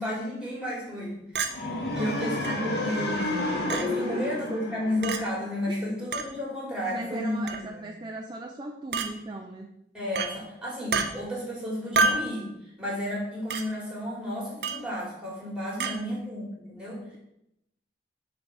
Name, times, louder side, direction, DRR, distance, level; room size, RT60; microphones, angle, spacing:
voice 1, 0.0-3.3 3.7-7.9 9.9-12.5 12.8-17.0, left 1 dB, 5° right, -4 dB, 2.4 m, -32 dB
Chink clink, 1.4-1.5 2.4-2.5 3.7-3.9 5.0-5.2 6.1-6.3 7.5-7.7 8.9-9.1 10.2-10.3 10.9-11.1 12.0-12.3 13.5-13.6 14.6-14.9 15.8-16.0, right 4 dB, 60° right, 0.6 m, -27 dB
sound 1, 1.5-5.6, left 2 dB, 65° left, 1.3 m, -31 dB
voice 2, 1.8-3.0 4.0-4.6 5.7-5.8 6.9-9.7 15.7-16.2, right 2 dB, 25° right, 2 dB, 0.4 m, -38 dB
6.5 x 3.4 x 5.8 m, 0.81 s
head